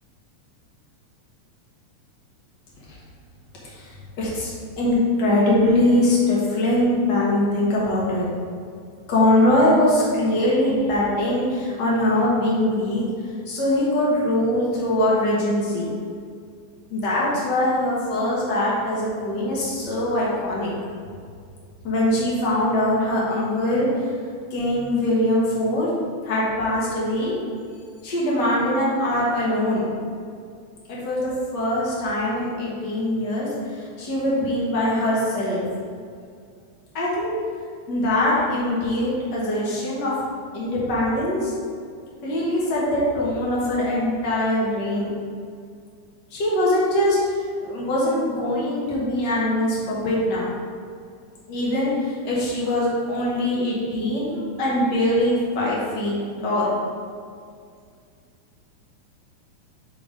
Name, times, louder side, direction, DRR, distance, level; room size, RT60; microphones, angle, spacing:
voice 1, 4.2-8.3 9.1-13.0 13.5-15.9 16.9-20.7 21.8-24.1 24.5-25.9 26.2-27.3 28.0-29.9 30.9-35.6 36.9-37.3 37.9-40.1 40.5-41.5 42.2-45.1 46.3-50.5 51.5-56.2 56.4-56.7, left 1 dB, 50° left, -6 dB, 1.4 m, -22 dB
5.1 x 4.0 x 5.0 m, 2.2 s
omnidirectional pair, 3.4 m